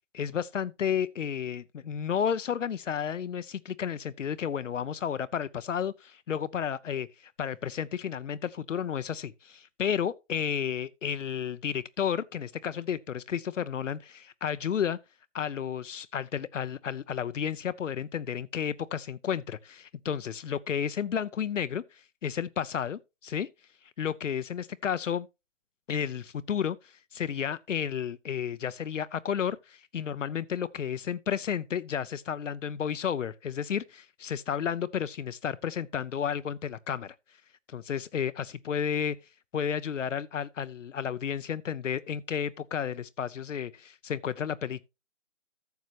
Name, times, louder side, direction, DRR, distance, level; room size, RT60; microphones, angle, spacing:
voice 1, 0.1-15.0 15.3-23.5 24.0-25.3 25.9-37.1 37.7-39.2 39.5-44.8, left 8 dB, 75° left, 0.7 m, -32 dB
14.0 x 6.4 x 3.0 m
hypercardioid pair, 170°, 37 cm